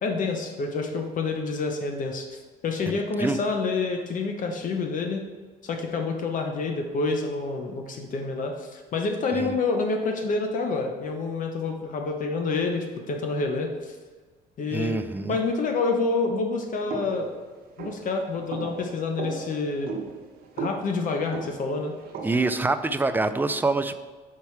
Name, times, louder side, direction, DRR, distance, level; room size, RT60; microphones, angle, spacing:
voice 1, 0.0-2.4 2.6-5.2 5.6-13.9 14.6-14.9 15.3-17.3 17.8-19.9 20.6-21.9, left 3 dB, 50° left, 3 dB, 0.8 m, -28 dB
voice 2, 2.9-3.4 9.3-9.6 14.7-15.4 22.2-24.0, right 3 dB, 10° right, 10 dB, 0.3 m, -26 dB
sound 1, 16.9-22.6, right 5 dB, 60° right, 1.0 m, -37 dB
4.7 x 4.5 x 5.7 m, 1.4 s
cardioid pair, 110°, 17 cm